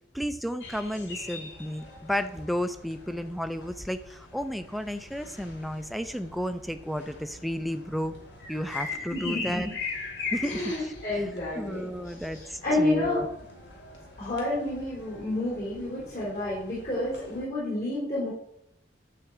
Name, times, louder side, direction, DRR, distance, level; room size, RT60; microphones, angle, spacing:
voice 1, 0.1-8.1 8.5-9.7 10.3-10.7 11.1-11.3 11.6-13.3, equal, ahead, 9 dB, 0.6 m, -32 dB
sound 1, 0.6-17.4, left 4 dB, 75° left, 2.6 m, -41 dB
voice 2, 9.1-9.7 10.4-13.2 14.2-18.3, left 1 dB, 50° left, -7 dB, 4.2 m, -30 dB
11.5 x 4.8 x 7.8 m, 0.78 s
head